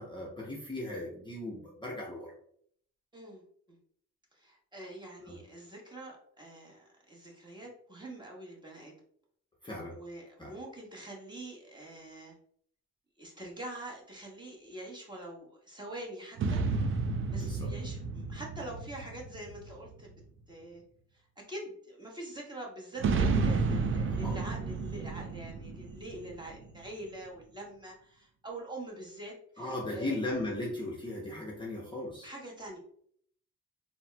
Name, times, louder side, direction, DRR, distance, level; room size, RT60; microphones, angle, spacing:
voice 1, 0.0-2.3 5.3-5.4 9.6-10.0 10.4-10.5 17.3-17.7 24.1-24.4 29.6-32.3, left 1 dB, 15° left, -3 dB, 0.6 m, -37 dB
voice 2, 3.1-3.4 3.7-3.8 4.3-8.9 9.9-12.4 13.2-16.6 17.3-20.1 20.5-20.8 21.1-30.1 32.2-32.8, right 1 dB, 15° right, -2 dB, 0.9 m, -45 dB
sound 1, 16.4-20.1 23.0-26.8, right 4 dB, 45° right, 0.4 m, -31 dB
4.0 x 2.0 x 2.2 m, 0.63 s
cardioid pair, 90°, 30 cm